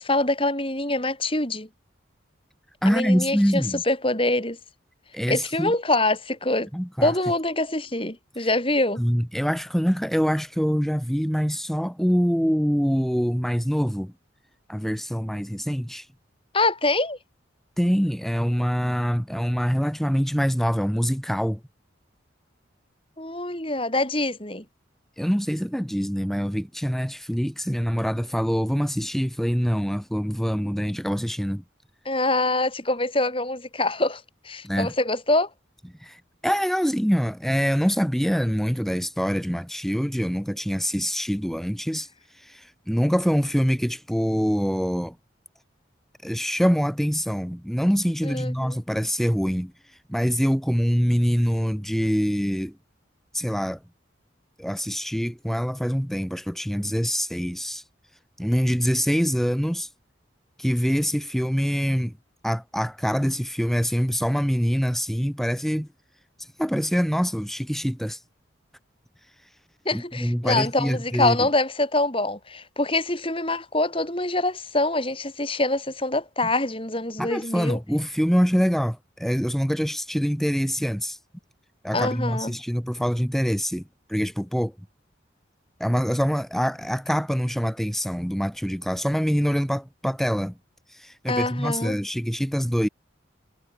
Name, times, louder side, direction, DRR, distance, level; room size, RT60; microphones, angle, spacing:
voice 1, 0.0-1.7 2.9-4.6 5.3-6.7 7.0-9.0 16.5-17.2 23.2-24.6 32.0-35.5 48.2-48.8 69.8-77.8 81.9-82.5 91.3-92.0, left 2 dB, 30° left, 7.9 m, -25 dB
voice 2, 2.8-3.8 5.1-5.7 6.7-7.1 8.4-8.5 9.0-14.1 14.7-16.1 17.8-21.6 25.2-31.6 34.6-34.9 36.0-42.1 42.3-45.2 46.2-49.7 50.1-52.8 53.3-53.8 54.6-57.8 58.4-59.9 60.6-62.2 62.4-65.9 66.4-68.2 69.9-71.5 77.2-81.2 81.8-83.8 84.1-84.7 85.8-90.5 90.9-92.9, equal, ahead, 6.3 m, -25 dB
head